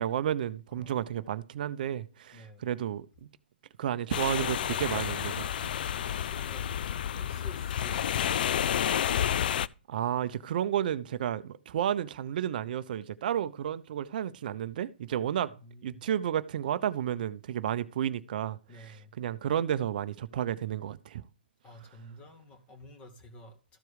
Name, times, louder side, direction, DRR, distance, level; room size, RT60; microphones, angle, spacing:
voice 1, 0.0-3.3 3.8-5.5 6.1-6.2 9.9-15.5 15.8-18.6 19.2-21.2, right 10 dB, 55° right, 0.6 m, -32 dB
voice 2, 0.7-1.3 2.3-2.7 6.3-6.8 7.0-9.1 15.5-16.0 18.7-19.1 21.6-23.8, equal, 20° left, 2.2 m, -51 dB
sound 1, 4.1-9.7, left 9 dB, 60° left, 0.4 m, -30 dB
13.5 x 4.6 x 4.9 m
hypercardioid pair, 135°, 6 cm